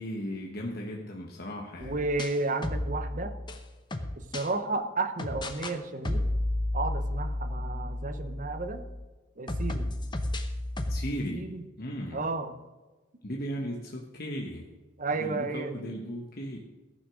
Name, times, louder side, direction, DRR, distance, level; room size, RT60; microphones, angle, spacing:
voice 1, 0.0-2.0 10.9-11.5 11.8-12.2 13.2-14.7 15.2-16.6, equal, 50° left, 0 dB, 1.1 m, -36 dB
sound 1, 1.8-4.5 5.2-5.8 6.0-9.0 9.5-11.1, left 1 dB, 20° left, 0.8 m, -32 dB
voice 2, 1.8-3.4 4.2-6.3 6.7-8.8 9.4-9.9 11.3-11.6 12.1-12.6 15.0-16.0, right 3 dB, 40° right, 8 dB, 0.9 m, -32 dB
14.5 x 6.2 x 6.2 m, 1.2 s
head